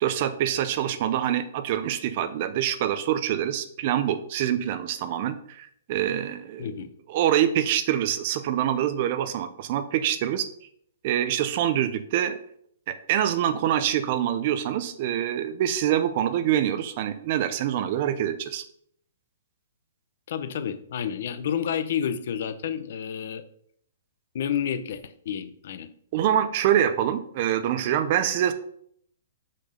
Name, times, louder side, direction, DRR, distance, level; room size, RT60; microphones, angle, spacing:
voice 1, 0.0-6.8 7.1-10.5 11.0-12.4 12.9-18.6 26.1-28.5, right 10 dB, 30° right, 10 dB, 0.6 m, -25 dB
voice 2, 6.6-6.9 20.3-23.4 24.3-25.9, left 8 dB, 45° left, 11 dB, 0.7 m, -30 dB
6.6 x 6.0 x 5.1 m, 0.66 s
hypercardioid pair, 180°, 0 cm